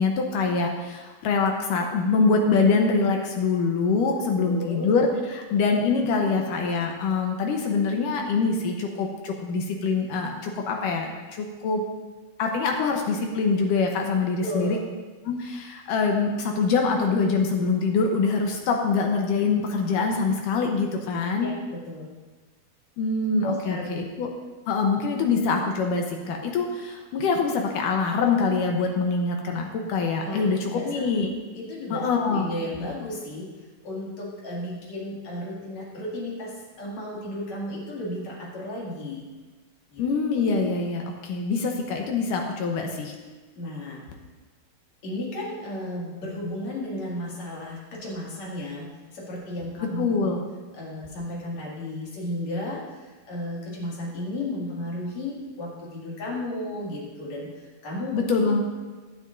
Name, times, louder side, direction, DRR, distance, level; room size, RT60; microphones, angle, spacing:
voice 1, 0.0-11.8 12.4-14.8 15.3-21.5 23.0-24.3 24.7-31.3 31.9-32.4 40.0-43.2 50.0-50.4 58.1-58.6, left 4 dB, 75° left, 2 dB, 2.1 m, -24 dB
voice 2, 4.3-4.9 14.4-14.8 21.4-22.1 23.4-24.0 30.2-31.0 31.5-33.5 33.8-39.3 39.9-40.0 43.5-44.0 45.0-50.3 50.7-58.6, left 1 dB, 50° left, -4 dB, 3.2 m, -34 dB
16.5 x 10.5 x 2.6 m, 1.3 s
omnidirectional pair, 4.5 m